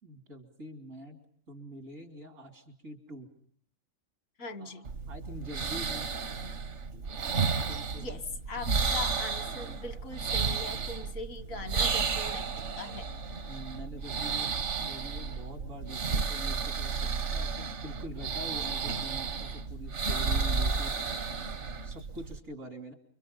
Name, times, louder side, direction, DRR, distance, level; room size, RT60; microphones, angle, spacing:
voice 1, 0.0-1.2 1.5-3.3 4.6-6.1 7.7-8.2 13.5-14.5 14.8-20.9 21.8-22.9, equal, 75° right, 4 dB, 3.7 m, -45 dB
voice 2, 4.4-4.9 7.9-8.2 8.5-12.5 12.7-13.1, left 3 dB, 85° left, 11 dB, 1.8 m, -41 dB
sound 1, 4.8-22.4, right 5 dB, 60° right, 1.5 m, -32 dB
29.0 x 26.0 x 5.5 m, 0.63 s
omnidirectional pair, 1.4 m